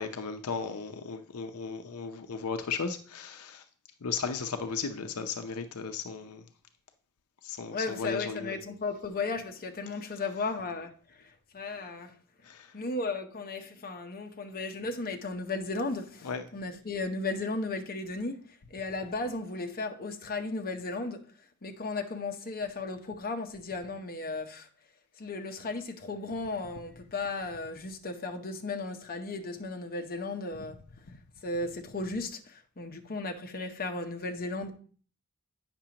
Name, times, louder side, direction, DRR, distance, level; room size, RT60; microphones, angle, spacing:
voice 1, 0.0-3.6 4.0-6.4 7.4-8.6 12.4-12.7 16.2-16.4, left 5 dB, 75° left, 0.6 m, -35 dB
voice 2, 7.7-12.1 12.7-21.2 21.6-24.7 25.2-30.8 31.4-34.7, left 3 dB, 45° left, 0.8 m, -35 dB
8.7 x 6.0 x 2.9 m
head